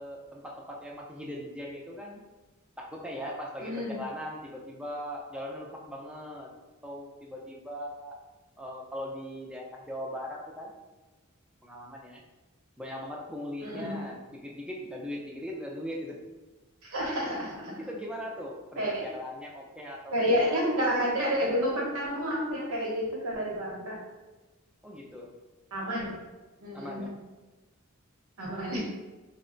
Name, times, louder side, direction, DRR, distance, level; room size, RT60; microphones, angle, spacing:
voice 1, 0.0-2.2 2.8-6.5 6.8-8.2 8.6-10.7 11.6-12.2 12.8-16.2 17.8-20.6 24.8-25.3 26.7-27.1, equal, 5° right, -1 dB, 0.4 m, -39 dB
voice 2, 3.6-4.0 13.6-14.0 16.8-17.7 18.8-19.0 20.1-24.0 25.7-26.1 26.6-27.0 28.4-28.8, equal, 85° right, -2 dB, 1.0 m, -29 dB
3.2 x 2.1 x 3.8 m, 1.2 s
head